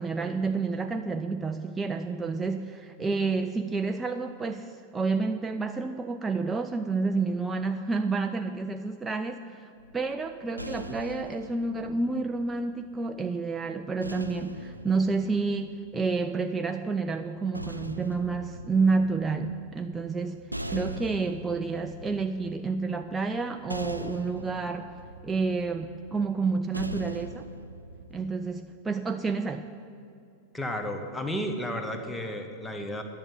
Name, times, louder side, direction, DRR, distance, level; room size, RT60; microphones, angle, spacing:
voice 1, 0.0-24.9 25.2-27.5 28.1-29.7, right 4 dB, 15° right, 6 dB, 0.4 m, -29 dB
sound 1, 9.8-13.1 14.0-16.3 17.2-28.3, right 1 dB, 85° right, 0.5 m, -41 dB
voice 2, 30.5-33.0, equal, 10° left, 5 dB, 1.2 m, -32 dB
10.5 x 6.5 x 8.8 m, 2.5 s
figure-of-eight pair, 90°, 0 cm